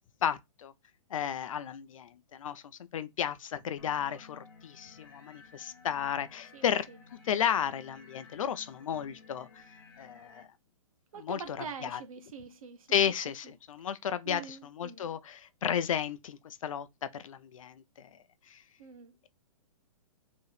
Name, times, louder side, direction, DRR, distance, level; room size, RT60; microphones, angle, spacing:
voice 1, 0.2-0.7 1.1-2.6 2.9-6.9 7.2-9.6 10.0-10.5 11.2-12.0 12.9-16.9 17.1-18.1 18.5-18.6, left 9 dB, 60° left, 0.5 m, -33 dB
sound 1, 3.8-10.4, left 4 dB, 40° left, 0.9 m, -55 dB
voice 2, 11.1-13.0 14.2-15.1 18.8-19.1, right 6 dB, 65° right, 1.1 m, -44 dB
4.5 x 3.1 x 3.2 m
hypercardioid pair, 160°, 19 cm